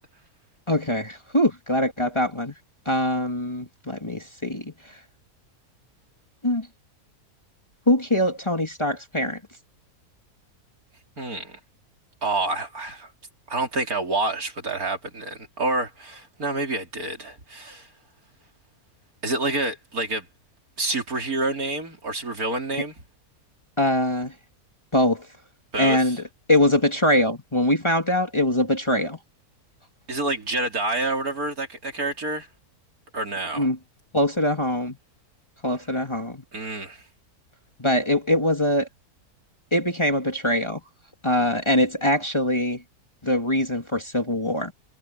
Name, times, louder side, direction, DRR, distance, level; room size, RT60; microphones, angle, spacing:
voice 1, 0.7-2.5 2.9-4.7 6.4-6.7 7.9-9.4 23.8-24.3 24.9-25.3 25.8-26.2 26.5-29.2 33.5-33.8 34.1-35.0 35.6-36.4 37.8-38.9 39.7-40.8 41.2-42.8 43.2-44.7, left 1 dB, 20° left, 2.3 m, -23 dB
voice 2, 11.2-11.6 12.2-13.1 13.5-17.9 19.2-20.3 20.8-22.9 25.7-26.2 30.1-32.5 33.1-33.7 36.5-37.0, right 2 dB, 65° right, 4.1 m, -28 dB
omnidirectional pair, 1.6 m